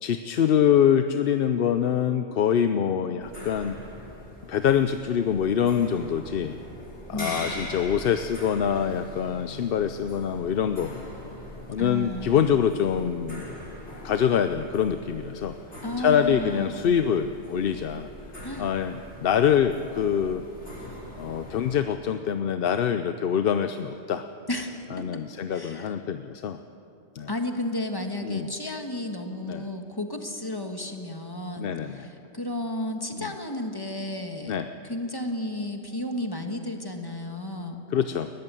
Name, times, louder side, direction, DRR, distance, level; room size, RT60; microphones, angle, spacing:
voice 1, 0.0-3.8 4.5-6.6 7.1-11.0 11.7-13.4 14.0-15.6 16.0-18.1 18.6-19.0 19.2-20.4 21.2-24.3 24.9-26.6 27.1-27.3 28.2-28.5 29.5-29.6 31.6-32.1 33.2-33.3 34.5-34.7 37.9-38.3, left 8 dB, 60° left, 9 dB, 0.8 m, -24 dB
sound 1, 3.2-21.8, left 1 dB, 90° left, 3.7 m, -42 dB
voice 2, 7.1-7.5 11.8-12.5 15.8-17.0 18.4-18.7 24.5-25.2 25.5-26.0 27.3-34.6 34.8-37.8, left 1 dB, 20° left, 4 dB, 1.6 m, -33 dB
20.0 x 14.5 x 9.1 m, 2.8 s
omnidirectional pair, 1.1 m